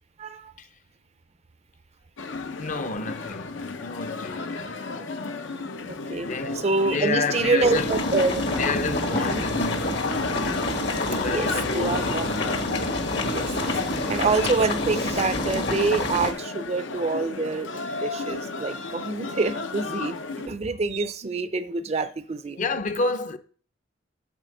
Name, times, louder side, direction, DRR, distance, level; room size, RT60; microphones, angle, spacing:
voice 1, 0.2-0.5 5.9-8.4 9.1-9.4 11.3-11.5 11.7-12.3 13.3-13.8 14.1-17.7 17.9-20.2 20.5-22.6, right 3 dB, 35° right, 0.5 m, -26 dB
sound 1, 2.2-20.5, left 4 dB, 80° left, 0.8 m, -33 dB
voice 2, 2.6-5.1 6.2-8.0 8.5-10.3 11.0-12.9 22.5-23.4, left 4 dB, 40° left, 0.6 m, -31 dB
sound 2, 7.6-16.3, left 1 dB, 65° left, 1.3 m, -28 dB
7.5 x 4.6 x 6.5 m
head